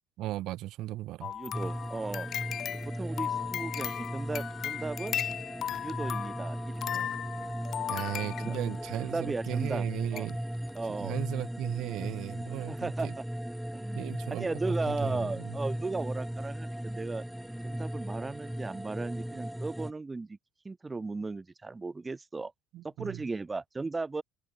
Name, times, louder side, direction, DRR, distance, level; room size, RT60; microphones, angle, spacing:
voice 1, 0.2-1.3 7.9-10.4 11.0-13.1 13.9-14.6 14.9-15.5 22.7-23.2, right 15 dB, 65° right, 1.6 m, -36 dB
sound 1, 1.2-9.0 9.7-9.8 10.2-10.3 10.7-10.8, left 9 dB, 45° left, 1.6 m, -36 dB
voice 2, 1.2-2.3 2.7-5.2 5.8-7.1 8.3-9.9 10.1-10.3 10.7-11.2 12.7-13.2 13.7-17.2 17.6-20.4 20.7-22.5 22.8-24.2, right 3 dB, 15° right, 1.7 m, -36 dB
sound 2, 1.5-19.9, equal, ahead, 1.6 m, -37 dB
open air
cardioid pair, 115°, 0 cm